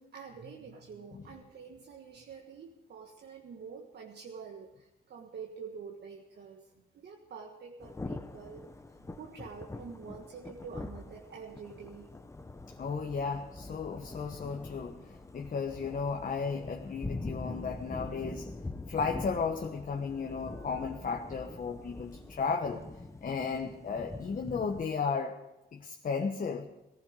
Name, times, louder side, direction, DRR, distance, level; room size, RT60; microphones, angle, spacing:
voice 1, 0.0-6.7 6.9-8.6 8.9-12.1, right 5 dB, 60° right, 1 dB, 1.5 m, -47 dB
Thunder / Rain, 7.8-24.8, left 2 dB, 15° left, 0.9 m, -44 dB
voice 2, 12.8-18.5 18.9-22.8 23.2-25.4 25.7-26.7, left 5 dB, 45° left, 3 dB, 1.3 m, -34 dB
18.0 x 14.5 x 4.8 m, 0.94 s
cardioid pair, 90°, 20 cm